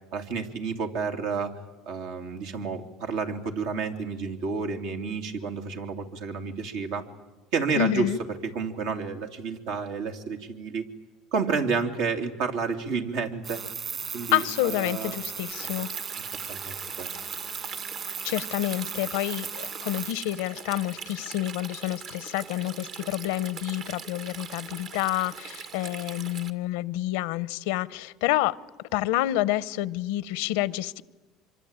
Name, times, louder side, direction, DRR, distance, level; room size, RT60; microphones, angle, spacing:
voice 1, 0.1-1.5 1.9-7.0 7.5-8.1 8.4-10.9 11.3-13.6 14.1-15.2 16.2-17.1, right 5 dB, 80° right, 5 dB, 2.8 m, -30 dB
voice 2, 7.8-8.2 14.3-15.9 18.2-28.6 28.9-31.0, left 15 dB, 85° left, 20 dB, 0.8 m, -28 dB
sound 1, 13.4-20.1, right 6 dB, 40° right, 2.5 m, -37 dB
Stream, 15.5-26.5, right 6 dB, 55° right, 1.9 m, -41 dB
25.5 x 24.0 x 8.9 m, 1.2 s
supercardioid pair, 105°, 0 cm